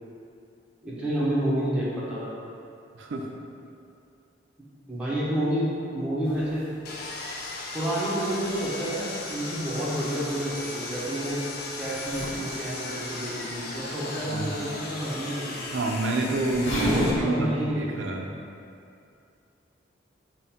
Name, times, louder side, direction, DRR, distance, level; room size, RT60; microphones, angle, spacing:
voice 1, 0.8-2.3 4.9-6.7 7.7-11.4 11.8-15.9 16.7-17.9, right 1 dB, 5° right, -9 dB, 0.6 m, -29 dB
sound 1, 6.2-17.2, equal, 80° left, 0.9 m, -37 dB
Sawing, 6.9-17.1, left 2 dB, 55° left, 0.4 m, -37 dB
voice 2, 14.3-14.6 15.7-18.3, right 2 dB, 75° right, 1 dB, 0.4 m, -28 dB
3.6 x 2.1 x 4.1 m, 2.5 s
head